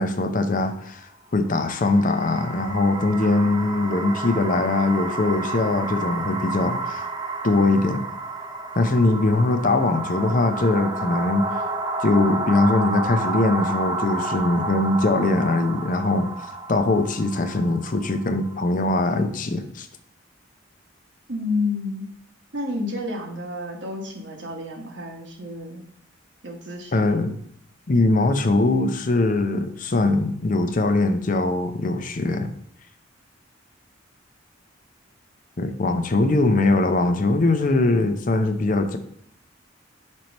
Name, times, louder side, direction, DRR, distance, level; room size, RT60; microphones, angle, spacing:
voice 1, 0.0-7.1 7.4-8.1 8.7-11.5 12.0-16.3 16.7-19.9 26.9-27.3 27.9-32.5 35.6-39.0, left 2 dB, 40° left, 8 dB, 0.6 m, -21 dB
sound 1, 1.5-18.7, right 2 dB, 20° right, 0.7 m, -31 dB
voice 2, 3.2-3.7 21.3-22.1 22.5-25.8 26.4-27.1, left 2 dB, 60° right, 2 dB, 1.4 m, -30 dB
5.4 x 4.5 x 5.2 m, 0.67 s
head